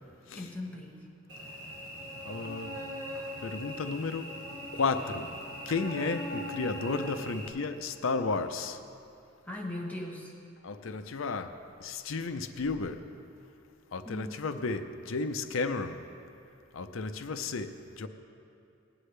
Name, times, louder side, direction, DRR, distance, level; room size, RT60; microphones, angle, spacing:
voice 1, 0.3-1.1 9.5-10.3 14.0-14.4, left 1 dB, 10° left, -2 dB, 1.1 m, -39 dB
Cricket / Buzz, 1.3-7.5, equal, 65° right, 2.4 m, -40 dB
voice 2, 2.2-2.7 3.4-4.3 4.7-5.3 5.7-8.8 10.6-11.5 11.8-13.0 13.9-16.0 16.7-18.1, left 4 dB, 80° left, 8 dB, 0.6 m, -33 dB
19.0 x 9.7 x 3.3 m, 2.7 s
head